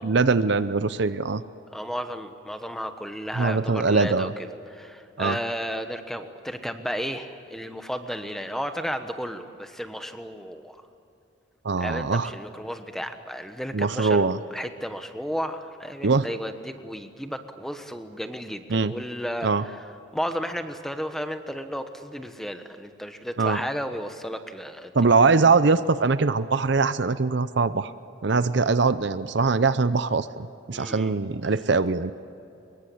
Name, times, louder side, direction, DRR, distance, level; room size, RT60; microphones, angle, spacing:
voice 1, 0.0-1.4 3.4-4.3 5.2-5.4 11.6-12.3 13.7-14.4 16.0-16.3 18.7-18.9 19.4-19.6 23.4-23.6 24.9-27.9 28.2-32.1, right 4 dB, 55° right, 13 dB, 0.6 m, -22 dB
voice 2, 1.7-4.3 4.7-10.8 11.8-24.9 30.7-31.1, equal, ahead, 7 dB, 1.2 m, -33 dB
24.5 x 22.0 x 8.6 m, 2.8 s
head